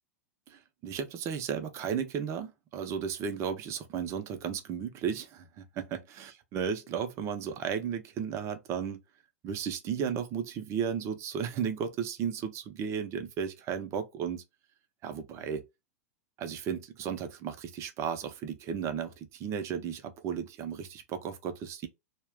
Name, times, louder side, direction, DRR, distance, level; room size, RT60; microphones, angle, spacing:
voice 1, 0.5-9.0 9.4-14.4 15.0-15.6 16.4-21.9, right 7 dB, 35° right, 0.6 m, -34 dB
2.4 x 2.1 x 3.3 m
hypercardioid pair, 105°, 8 cm